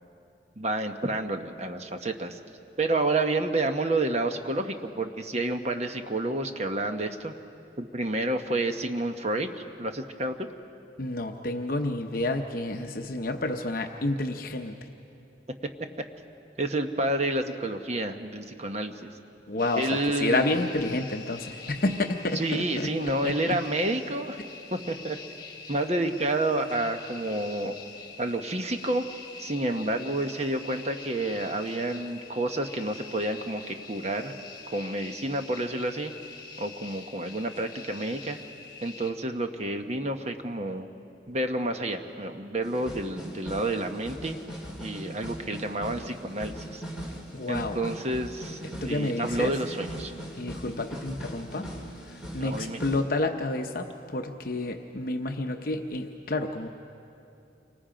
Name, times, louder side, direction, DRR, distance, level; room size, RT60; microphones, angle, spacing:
voice 1, 0.6-2.4 2.8-7.3 7.8-9.5 9.8-10.5 16.6-19.1 19.7-20.6 22.3-24.4 24.7-25.2 25.7-27.7 28.2-29.0 29.4-34.3 34.7-36.1 36.6-38.4 38.8-40.9 41.3-44.4 44.8-46.8 47.5-48.6 48.8-50.1 52.4-52.8, right 2 dB, 35° right, 6 dB, 1.0 m, -29 dB
voice 2, 11.0-14.8 19.5-23.6 47.3-47.8 48.8-49.6 50.3-51.8 52.1-56.7, left 2 dB, 50° left, 4 dB, 0.8 m, -30 dB
sound 1, 19.6-39.1, left 4 dB, 25° left, 2.2 m, -45 dB
sound 2, 42.6-53.0, right 1 dB, 5° right, 2.9 m, -40 dB
29.0 x 24.5 x 5.1 m, 2.7 s
head